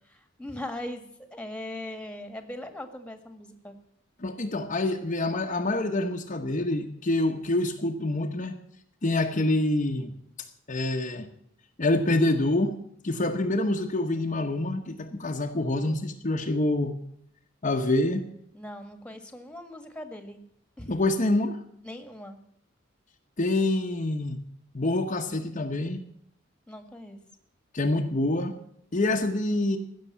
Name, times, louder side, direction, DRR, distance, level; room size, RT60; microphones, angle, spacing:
voice 1, 0.1-3.7 18.5-20.4 20.8-21.0 21.8-22.4 26.7-27.2, left 1 dB, 5° left, 7 dB, 1.6 m, -40 dB
voice 2, 4.2-8.6 9.0-10.1 10.7-11.3 11.8-12.8 13.0-17.0 17.6-18.3 20.9-21.6 23.4-24.4 24.7-26.0 27.7-28.6 28.9-29.8, left 2 dB, 40° left, 3 dB, 0.9 m, -26 dB
16.0 x 6.7 x 9.4 m, 0.72 s
head